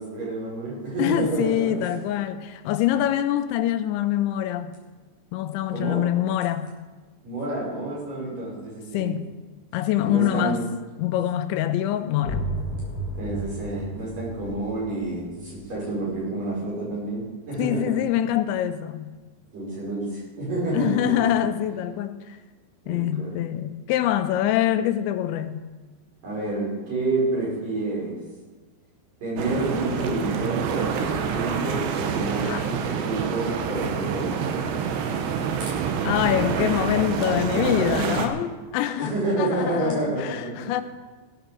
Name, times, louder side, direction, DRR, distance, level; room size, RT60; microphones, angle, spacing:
voice 1, 0.0-1.7 5.7-6.1 7.2-9.1 10.0-10.6 13.2-17.9 19.5-21.3 22.9-23.3 26.2-28.2 29.2-34.7 37.1-38.2 39.0-40.7, right 2 dB, 50° right, 6.9 m, -29 dB
voice 2, 1.0-4.7 5.3-6.7 8.9-9.2 9.7-10.6 11.0-12.5 17.6-19.1 20.7-22.4 22.9-25.6 32.4-32.7 36.0-40.8, left 12 dB, 90° left, 3.0 m, -25 dB
sound 1, 12.2-17.7, right 1 dB, 35° left, 1.6 m, -34 dB
sound 2, 29.4-38.3, right 7 dB, 75° right, 2.9 m, -27 dB
16.0 x 7.0 x 6.8 m
omnidirectional pair, 5.2 m